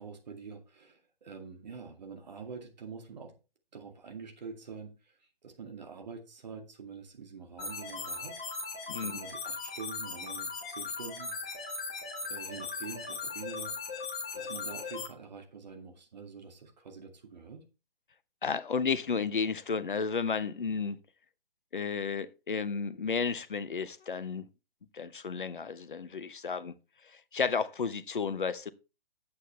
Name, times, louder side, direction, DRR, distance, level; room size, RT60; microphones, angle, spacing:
voice 1, 0.0-3.3 3.7-8.4 9.0-11.3 12.2-14.0 14.3-17.7, right 5 dB, 45° right, 2.3 m, -46 dB
sound 1, 7.6-15.1, left 4 dB, 5° left, 0.4 m, -38 dB
voice 2, 8.9-9.2 18.4-21.0 21.7-24.5 24.9-26.7 27.3-28.7, left 5 dB, 60° left, 1.0 m, -32 dB
10.0 x 8.4 x 3.3 m
figure-of-eight pair, 135°, 29 cm